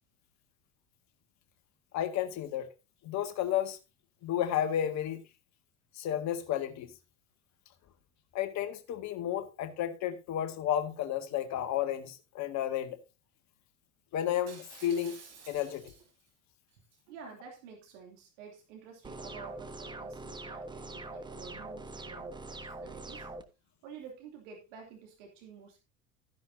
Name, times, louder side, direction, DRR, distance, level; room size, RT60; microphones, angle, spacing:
voice 1, 1.9-2.7 3.0-3.8 4.2-5.2 6.0-6.9 8.3-13.0 14.1-15.2 15.5-15.8, left 10 dB, 40° left, 1.8 m, -32 dB
Shatter, 14.5-16.3 16.7-17.0, right 5 dB, 35° right, 4.8 m, -52 dB
voice 2, 17.1-23.3 23.8-25.8, right 6 dB, 60° right, 2.8 m, -50 dB
sound 1, 19.0-23.4, right 2 dB, 10° right, 1.3 m, -43 dB
13.5 x 10.5 x 2.7 m
figure-of-eight pair, 75°, 42 cm